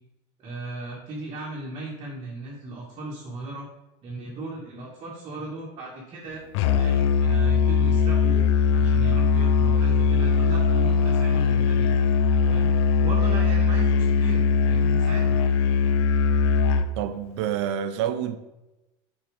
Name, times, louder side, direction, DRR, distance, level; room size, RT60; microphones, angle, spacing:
voice 1, 0.4-3.7 4.0-6.4 6.7-8.5 8.7-11.9 12.5-12.7 13.0-15.4, right 2 dB, 35° right, -4 dB, 1.8 m, -37 dB
Musical instrument, 6.5-16.9, left 5 dB, 80° left, 0.6 m, -20 dB
voice 2, 17.0-18.4, right 10 dB, 80° right, 9 dB, 0.8 m, -28 dB
7.1 x 4.6 x 5.1 m, 0.98 s
supercardioid pair, 135°, 14 cm